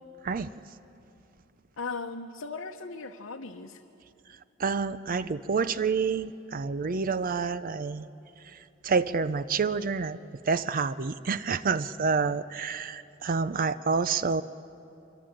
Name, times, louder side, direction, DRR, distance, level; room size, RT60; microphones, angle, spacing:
voice 1, 1.8-3.8, left 4 dB, 75° left, 2 dB, 1.1 m, -37 dB
voice 2, 4.6-8.1 8.4-10.2 10.4-14.4, right 5 dB, 45° right, 14 dB, 0.5 m, -28 dB
25.5 x 25.0 x 8.9 m, 2.8 s
head